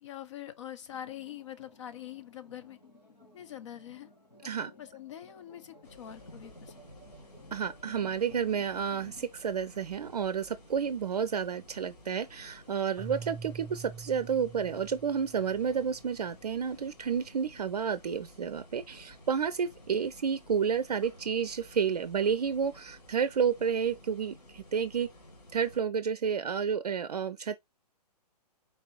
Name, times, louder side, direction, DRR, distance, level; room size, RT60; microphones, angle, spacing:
voice 1, 0.0-2.8 3.3-4.1 4.4-4.5 4.8-6.8, left 11 dB, 45° left, 0.7 m, -44 dB
sound 1, 0.9-9.3, left 1 dB, 85° left, 1.4 m, -55 dB
sound 2, 5.8-25.8, left 1 dB, 70° left, 1.7 m, -54 dB
voice 2, 7.5-25.1 25.5-27.6, right 7 dB, 65° right, 0.5 m, -30 dB
Keyboard (musical), 13.0-16.1, right 5 dB, 5° right, 0.8 m, -45 dB
4.2 x 3.4 x 2.9 m
figure-of-eight pair, 125°, 21 cm